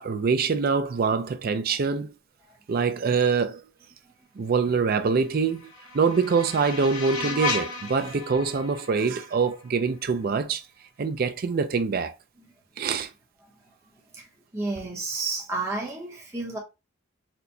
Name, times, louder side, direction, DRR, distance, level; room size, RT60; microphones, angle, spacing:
voice 1, 0.0-2.1 2.7-3.7 4.4-5.7 5.9-10.6 11.0-12.1 12.8-13.1, right 5 dB, 45° right, 0.4 m, -24 dB
sound 1, 5.2-10.2, left 3 dB, 80° left, 0.8 m, -35 dB
voice 2, 14.5-16.6, right 3 dB, 15° right, 0.8 m, -31 dB
4.3 x 2.1 x 2.6 m
head